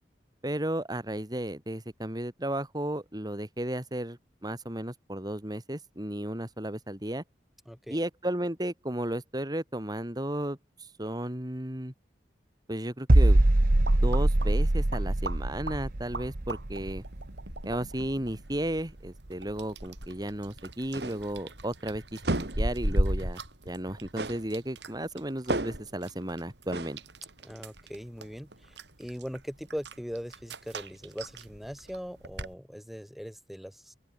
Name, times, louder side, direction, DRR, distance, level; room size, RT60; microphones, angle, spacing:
voice 1, 0.4-7.2 7.9-10.6 11.0-11.9 12.7-13.4 14.0-17.0 17.6-27.0, right 1 dB, 25° right, 2.6 m, -34 dB
voice 2, 7.7-8.0 27.4-34.1, equal, ahead, 6.1 m, -40 dB
sound 1, 13.1-18.8 19.1-19.3, right 1 dB, 55° right, 1.2 m, -24 dB
sound 2, 13.4-32.5, right 1 dB, 85° right, 6.9 m, -38 dB
sound 3, 20.9-21.3 22.2-22.7 24.2-24.5 25.5-25.9 26.7-27.0, right 2 dB, 70° right, 2.0 m, -32 dB
open air
head